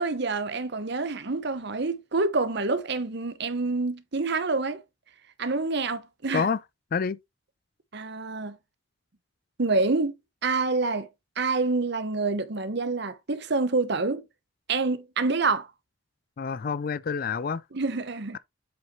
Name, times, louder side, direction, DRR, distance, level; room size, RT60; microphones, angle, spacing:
voice 1, 0.0-4.8 5.4-6.5 7.9-8.6 9.6-10.1 10.4-11.1 11.4-14.2 14.7-15.7 17.7-18.4, right 3 dB, 55° right, 0.9 m, -27 dB
voice 2, 16.4-17.6, left 5 dB, 45° left, 0.4 m, -27 dB
7.9 x 5.2 x 3.1 m
head